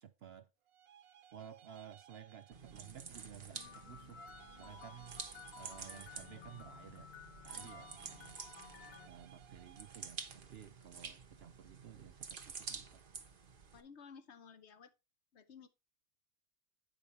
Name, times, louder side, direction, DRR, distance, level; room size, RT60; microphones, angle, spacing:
voice 1, 0.0-0.5 1.3-4.2 4.6-5.2 5.6-7.1 7.4-8.4 9.1-13.0, right 9 dB, 60° right, 0.7 m, -54 dB
sound 1, 0.7-3.5 4.1-6.9 7.4-10.4, right 10 dB, 85° right, 1.1 m, -61 dB
sound 2, 2.5-13.8, right 5 dB, 45° right, 1.1 m, -50 dB
sound 3, 3.5-9.1, left 8 dB, 90° left, 0.4 m, -55 dB
voice 2, 13.7-14.9 15.3-15.7, left 6 dB, 60° left, 1.0 m, -56 dB
9.0 x 5.3 x 4.2 m
omnidirectional pair, 1.4 m